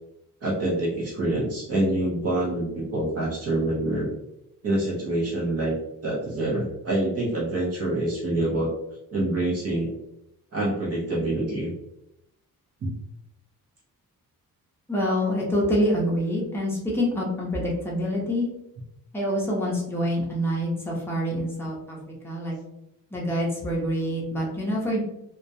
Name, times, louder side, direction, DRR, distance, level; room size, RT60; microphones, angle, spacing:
voice 1, 0.4-4.2 4.6-5.8 6.0-8.7 9.1-9.9 10.5-11.7 12.8-12.9, right 1 dB, 45° right, -5 dB, 0.6 m, -26 dB
voice 2, 14.9-18.5 19.1-22.0 22.2-22.6 23.1-25.0, equal, 5° left, -4 dB, 0.6 m, -26 dB
2.2 x 2.1 x 2.7 m, 0.83 s
wide cardioid pair, 170°, 35 cm